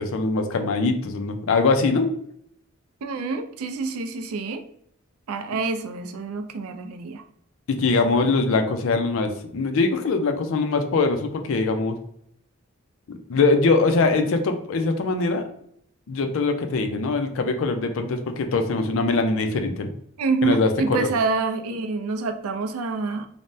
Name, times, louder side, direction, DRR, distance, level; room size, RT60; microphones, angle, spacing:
voice 1, 0.0-2.1 7.7-12.0 13.1-15.4 16.1-19.9 20.4-21.1, left 3 dB, 65° left, 6 dB, 0.4 m, -22 dB
voice 2, 3.0-4.6 5.3-7.2 20.2-23.3, right 4 dB, 80° right, 7 dB, 0.4 m, -27 dB
3.3 x 2.1 x 2.6 m, 0.71 s
head